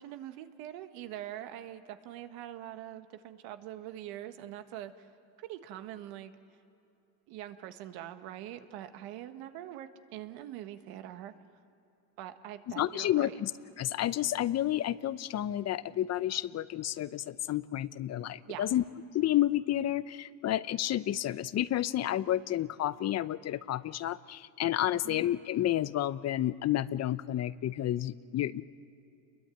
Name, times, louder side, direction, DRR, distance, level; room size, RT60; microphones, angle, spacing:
voice 1, 0.0-5.1 5.4-6.3 7.3-11.3 12.2-13.4 18.4-18.6 25.0-25.3, right 12 dB, 75° right, 8 dB, 1.6 m, -43 dB
voice 2, 12.8-13.5 13.8-18.8 19.1-28.6, left 13 dB, 40° left, 16 dB, 0.8 m, -30 dB
29.0 x 22.0 x 9.2 m, 2.8 s
supercardioid pair, 105°, 38 cm